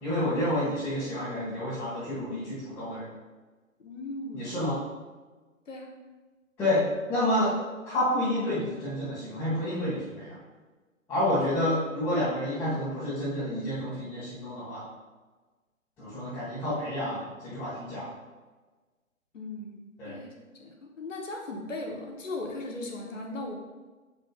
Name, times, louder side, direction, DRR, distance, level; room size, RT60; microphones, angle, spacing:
voice 1, 0.0-3.1 4.3-4.8 6.6-7.5 7.8-10.4 11.1-14.8 16.0-18.1 20.0-20.2, left 1 dB, 5° left, -15 dB, 1.7 m, -29 dB
voice 2, 3.8-4.6 5.7-5.9 19.3-20.3 20.6-23.5, left 2 dB, 65° left, 1 dB, 1.4 m, -38 dB
7.0 x 6.4 x 2.5 m, 1.3 s
figure-of-eight pair, 130°, 41 cm